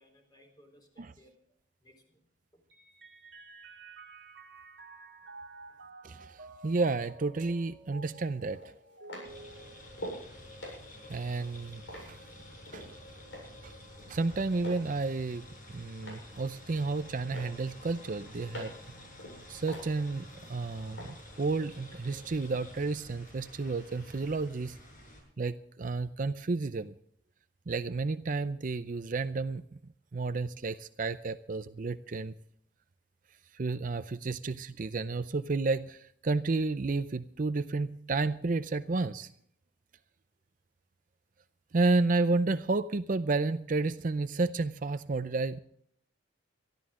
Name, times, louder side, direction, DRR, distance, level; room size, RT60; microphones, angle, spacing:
voice 1, 0.0-1.4 1.8-2.6 5.7-5.9, equal, 20° left, 3 dB, 4.0 m, -62 dB
Mallet percussion, 2.7-10.4, right 3 dB, 70° right, 1.7 m, -51 dB
voice 2, 6.0-8.6 11.1-11.8 12.1-12.2 12.7-12.8 13.6-13.7 14.1-18.7 19.5-24.8 25.4-26.9 27.7-29.6 30.1-32.3 33.5-39.3 41.7-45.6, right 3 dB, 45° right, 12 dB, 0.5 m, -31 dB
sound 1, 7.5-7.6 8.5-10.3 10.6-12.9 13.3-13.7 14.0-14.9 15.2-16.3 16.7-17.1 17.3-18.9 19.2-20.5 21.0-21.1, equal, 80° left, 7.7 m, -44 dB
sound 2, 9.2-25.2, left 1 dB, 45° left, 7.2 m, -50 dB
23.5 x 13.0 x 3.7 m, 0.64 s
head